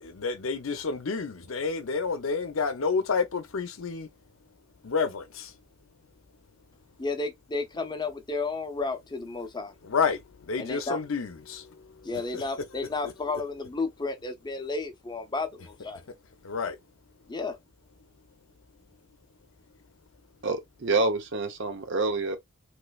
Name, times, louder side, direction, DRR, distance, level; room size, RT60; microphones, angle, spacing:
voice 1, 0.0-4.1 4.8-5.5 9.8-10.2 10.5-11.6 12.3-12.4 13.0-13.1 16.4-16.8, left 5 dB, 90° left, 0.6 m, -29 dB
voice 2, 7.0-9.7 10.6-11.0 12.0-16.0 17.3-17.6, left 3 dB, 20° left, 0.6 m, -32 dB
voice 3, 20.4-22.4, right 3 dB, 65° right, 0.8 m, -27 dB
3.1 x 3.1 x 2.3 m
head